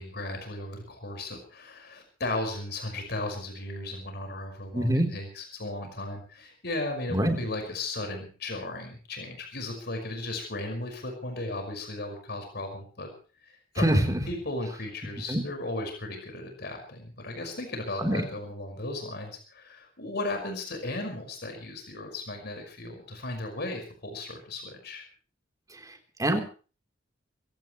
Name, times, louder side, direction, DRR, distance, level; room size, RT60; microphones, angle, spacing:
voice 1, 0.0-13.1 13.4-25.0, left 2 dB, 55° left, 4 dB, 5.7 m, -36 dB
voice 2, 4.7-5.1 7.1-7.4 13.8-14.2 15.3-15.4 18.0-18.2 25.7-26.4, right 1 dB, 20° right, 4 dB, 3.9 m, -25 dB
23.5 x 17.5 x 3.3 m, 0.38 s
head